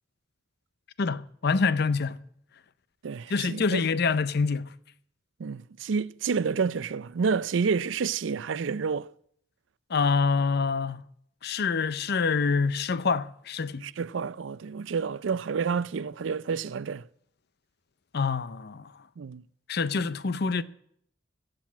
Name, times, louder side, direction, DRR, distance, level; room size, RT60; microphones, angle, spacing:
voice 1, 1.0-2.2 3.3-4.7 9.9-11.0 11.4-13.9 18.1-18.9 19.7-20.6, left 4 dB, 60° left, 0.6 m, -26 dB
voice 2, 3.0-3.8 5.4-9.1 13.8-17.0 19.2-19.4 19.9-20.0, right 5 dB, 75° right, 0.4 m, -29 dB
16.0 x 7.8 x 7.3 m
head